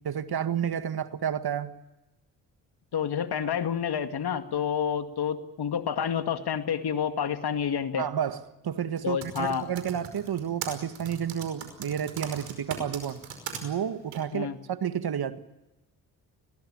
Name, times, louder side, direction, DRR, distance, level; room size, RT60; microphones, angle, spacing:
voice 1, 0.0-1.7 8.0-13.2 13.6-15.4, right 8 dB, 55° right, 11 dB, 1.8 m, -31 dB
voice 2, 2.9-8.0 9.0-9.6 14.3-14.6, left 8 dB, 55° left, 8 dB, 2.2 m, -29 dB
Typing, 9.0-13.6 14.1-14.2, right 7 dB, 75° right, 5.3 m, -38 dB
22.5 x 19.0 x 8.8 m, 1.0 s
supercardioid pair, 50°, 45 cm